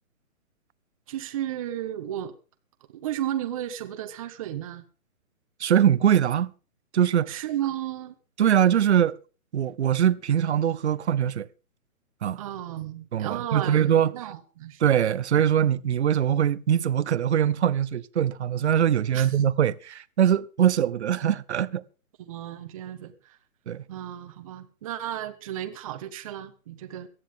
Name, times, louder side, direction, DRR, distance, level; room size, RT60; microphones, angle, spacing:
voice 1, 1.1-2.3 2.9-4.8 7.3-8.2 12.4-14.8 19.1-19.3 22.2-23.4 23.9-27.1, right 12 dB, 25° right, 1.2 m, -34 dB
voice 2, 5.6-6.5 6.9-7.4 8.4-9.2 9.5-11.5 12.2-12.4 13.1-14.1 14.8-21.8 23.7-23.8, right 9 dB, 50° right, 0.8 m, -22 dB
18.5 x 14.0 x 3.7 m
hypercardioid pair, 165°, 42 cm